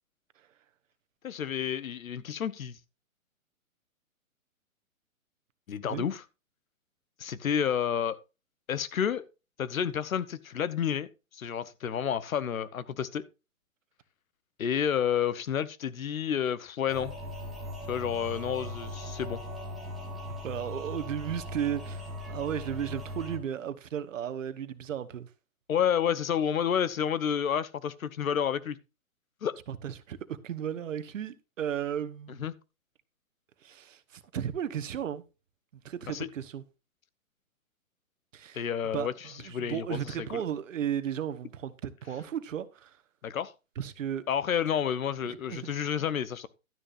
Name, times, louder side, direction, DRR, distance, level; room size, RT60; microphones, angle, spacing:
voice 1, 1.2-2.8 5.7-6.2 7.2-8.2 8.7-9.2 9.6-11.1 11.3-13.2 14.6-17.1 17.9-19.4 25.7-28.8 29.4-29.5 32.4-32.5 36.1-36.3 38.5-39.1 39.5-40.4 43.2-43.5 44.3-46.5, left 8 dB, 75° left, 1.0 m, -30 dB
sound 1, 16.9-23.4, left 1 dB, ahead, 0.4 m, -39 dB
voice 2, 20.3-25.3 29.7-32.4 33.6-35.2 35.7-36.6 38.3-38.6 38.9-43.0 43.8-44.2 45.2-45.8, right 9 dB, 65° right, 1.2 m, -35 dB
12.0 x 10.0 x 2.6 m
hypercardioid pair, 135°, 42 cm